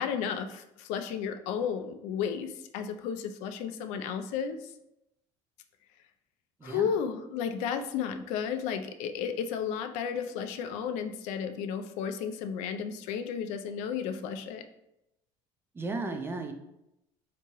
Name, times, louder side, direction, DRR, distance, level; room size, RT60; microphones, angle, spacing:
voice 1, 0.0-4.6 6.6-14.6, left 7 dB, 75° left, 8 dB, 0.4 m, -33 dB
voice 2, 6.6-7.0 15.7-16.5, right 3 dB, 20° right, 5 dB, 0.4 m, -35 dB
3.5 x 2.9 x 2.9 m, 0.86 s
supercardioid pair, 105°, 12 cm